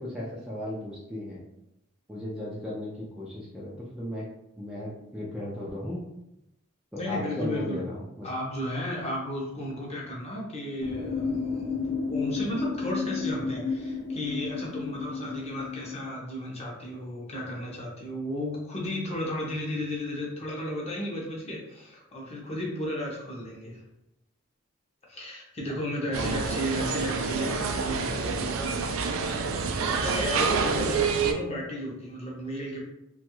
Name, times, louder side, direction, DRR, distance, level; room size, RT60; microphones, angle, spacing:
voice 1, 0.0-1.4 2.1-4.3 4.6-6.0 6.9-8.3 26.1-26.2, left 1 dB, ahead, -7 dB, 0.4 m, -36 dB
voice 2, 7.0-7.8 8.2-23.8 25.1-29.0 29.8-32.8, left 1 dB, 30° left, -3 dB, 0.7 m, -34 dB
sound 1, 10.8-16.1, left 4 dB, 85° left, 0.6 m, -32 dB
sound 2, 26.1-31.3, right 5 dB, 75° right, 0.3 m, -27 dB
3.0 x 2.3 x 3.0 m, 0.86 s
head